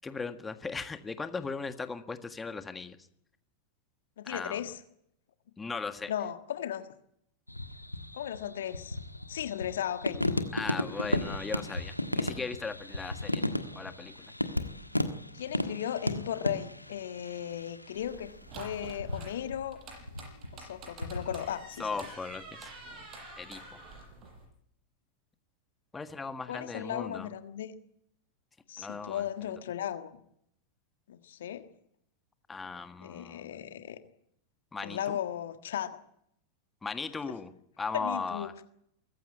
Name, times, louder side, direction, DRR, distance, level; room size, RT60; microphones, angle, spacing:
voice 1, 0.0-3.0 4.2-4.6 5.6-6.1 10.5-13.4 13.7-14.3 21.8-22.7 23.4-23.8 25.9-27.3 28.8-29.3 32.5-33.6 34.7-35.2 36.8-38.5, left 4 dB, 15° left, 10 dB, 1.6 m, -38 dB
voice 2, 4.2-4.8 6.1-6.8 8.1-9.0 9.3-10.2 15.3-19.8 20.5-21.9 26.5-27.7 28.7-30.1 31.1-31.7 33.0-34.0 34.8-36.0 37.9-38.6, left 10 dB, 60° left, 10 dB, 1.5 m, -36 dB
sound 1, 7.5-18.3 19.0-19.6 19.9-21.4, left 1 dB, 85° left, 1.5 m, -35 dB
sound 2, 17.9-24.5, right 2 dB, 35° right, 7.9 m, -48 dB
24.0 x 15.0 x 9.5 m, 0.74 s
figure-of-eight pair, 90°, 0 cm